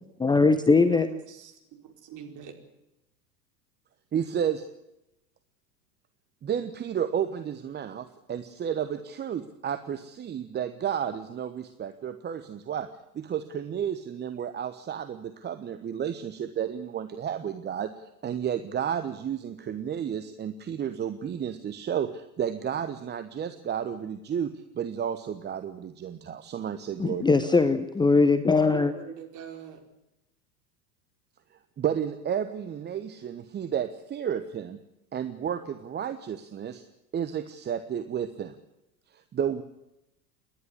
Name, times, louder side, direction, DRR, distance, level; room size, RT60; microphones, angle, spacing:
voice 1, 0.2-1.1 27.0-28.9, left 4 dB, 10° left, 0.9 m, -21 dB
voice 2, 0.8-2.5 28.7-29.8, right 7 dB, 35° right, 4.7 m, -41 dB
voice 3, 4.1-4.6 6.4-12.9 13.1-27.5 31.8-34.8 35.1-36.8 37.1-38.5 39.1-39.6, right 8 dB, 20° right, 1.1 m, -32 dB
29.0 x 11.5 x 9.8 m
figure-of-eight pair, 85°, 49 cm